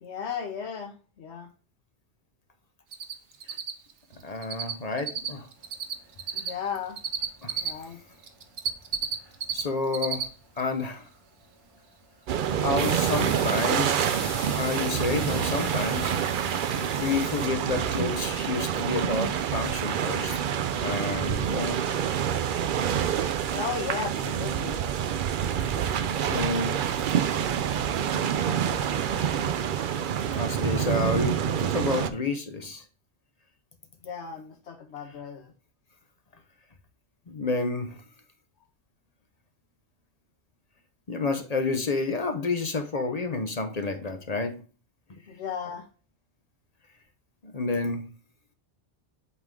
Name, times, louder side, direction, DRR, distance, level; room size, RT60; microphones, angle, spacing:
voice 1, 0.0-1.5 6.3-7.0 7.6-8.0 23.5-24.8 34.0-35.5 45.3-45.8, left 6 dB, 75° left, 2 dB, 1.1 m, -35 dB
Cricket, 2.9-3.1 3.4-7.7 8.2-9.6 9.9-10.2 10.6-10.7 13.2-13.3 13.7-13.8 14.0-14.1, right 7 dB, 85° right, 1.1 m, -30 dB
voice 2, 4.2-5.5 7.4-7.6 9.5-10.2 10.6-11.0 12.6-14.1 14.6-16.7 17.0-20.4 20.8-21.8 25.7-25.9 26.3-26.8 30.3-31.3 31.7-32.8 37.3-37.9 41.1-44.5 47.5-48.1, left 3 dB, 40° left, 6 dB, 0.8 m, -29 dB
sound 1, 5.6-17.5, right 1 dB, 20° right, 1.8 m, -42 dB
sound 2, 12.3-32.1, right 9 dB, 60° right, 0.6 m, -27 dB
8.1 x 3.6 x 3.6 m, 0.36 s
omnidirectional pair, 1.1 m